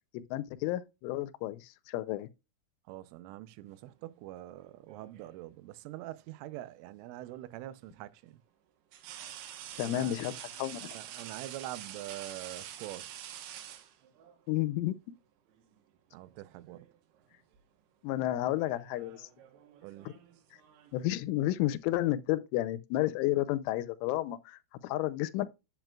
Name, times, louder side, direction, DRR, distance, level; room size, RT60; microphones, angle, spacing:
voice 1, 0.1-2.3 9.8-10.3 10.6-11.0 14.5-15.0 18.0-19.3 20.9-25.5, left 15 dB, 85° left, 3.1 m, -31 dB
voice 2, 2.9-8.4 9.8-10.2 10.8-13.2 16.1-16.9 19.8-20.1, right 15 dB, 85° right, 3.2 m, -44 dB
sound 1, 4.6-5.5 7.2-7.4 8.9-14.4 15.6-15.8 16.2-16.9 17.2-17.6 18.4-21.0, right 11 dB, 70° right, 2.8 m, -47 dB
8.9 x 7.9 x 2.3 m
omnidirectional pair, 5.5 m